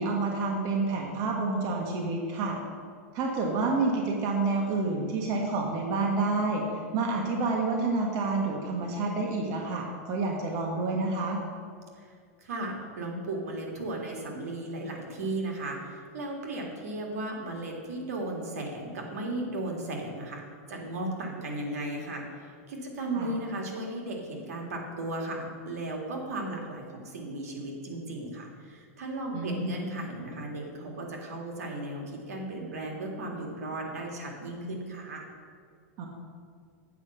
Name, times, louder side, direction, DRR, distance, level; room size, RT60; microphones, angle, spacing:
voice 1, 0.0-2.6 3.1-6.6 6.9-11.4 23.1-23.4 29.3-29.8 36.0-36.1, right 3 dB, 40° right, 0 dB, 1.4 m, -28 dB
voice 2, 12.0-20.4 20.7-35.2, right 2 dB, 80° right, 0 dB, 2.0 m, -36 dB
8.3 x 5.4 x 6.8 m, 2.2 s
supercardioid pair, 135°, 8 cm